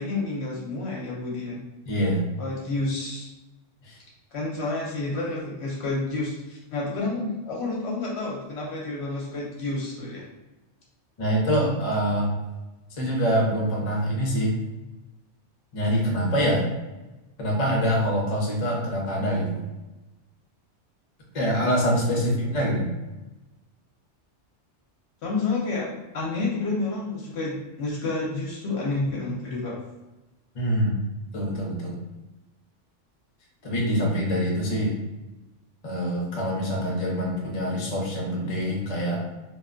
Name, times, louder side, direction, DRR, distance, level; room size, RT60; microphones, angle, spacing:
voice 1, 0.0-1.6 2.4-3.3 4.3-10.2 22.1-22.6 25.2-29.7, left 3 dB, 65° left, -4 dB, 0.9 m, -30 dB
voice 2, 1.9-2.3 3.8-4.0 11.2-12.3 13.0-14.5 15.7-16.6 17.4-19.6 21.3-22.9 30.5-31.0 31.3-32.0 33.6-34.9 35.8-39.2, equal, 40° left, -2 dB, 0.7 m, -25 dB
2.3 x 2.2 x 3.7 m, 1.1 s
omnidirectional pair, 1.3 m